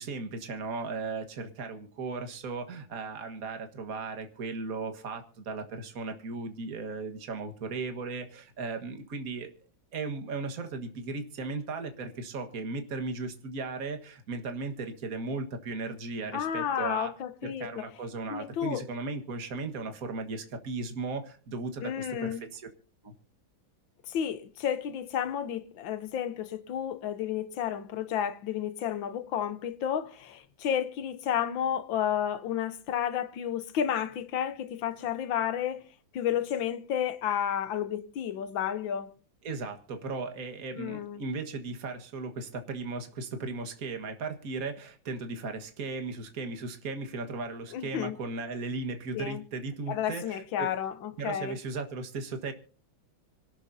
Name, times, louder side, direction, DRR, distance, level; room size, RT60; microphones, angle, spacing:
voice 1, 0.0-9.5 9.9-17.1 17.4-22.7 23.0-23.1 39.4-50.7 51.2-52.5, right 3 dB, 45° right, 1.9 m, -36 dB
voice 2, 16.3-17.8 18.3-18.8 21.8-22.4 24.1-35.8 36.1-39.1 40.7-41.2 47.7-48.2 49.1-49.4 49.9-51.6, left 9 dB, 75° left, 1.7 m, -31 dB
26.0 x 12.5 x 2.7 m
omnidirectional pair, 2.2 m